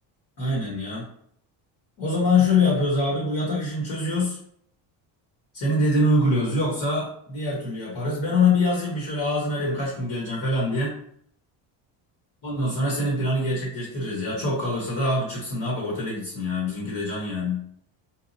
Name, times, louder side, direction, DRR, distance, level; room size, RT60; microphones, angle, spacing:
voice 1, 0.4-1.1 2.0-4.4 5.5-11.0 12.4-17.6, left 2 dB, 50° left, -5 dB, 1.3 m, -24 dB
4.1 x 2.5 x 2.7 m, 0.65 s
cardioid pair, 160°, 46 cm